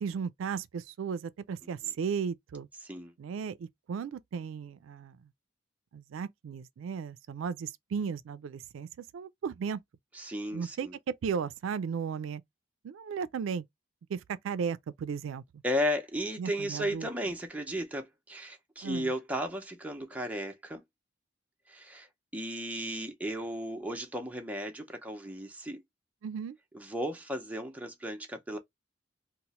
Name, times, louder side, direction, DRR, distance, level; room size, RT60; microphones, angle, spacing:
voice 1, 0.0-2.7 3.2-5.2 5.9-9.8 10.5-12.4 12.8-13.6 14.1-15.4 16.4-17.1 18.8-19.1 26.2-26.6, right 6 dB, 85° right, 0.3 m, -35 dB
voice 2, 2.8-3.1 10.1-10.9 15.6-20.8 21.7-22.1 22.3-25.8 26.7-28.6, equal, 10° right, 0.6 m, -35 dB
2.9 x 2.0 x 4.1 m
head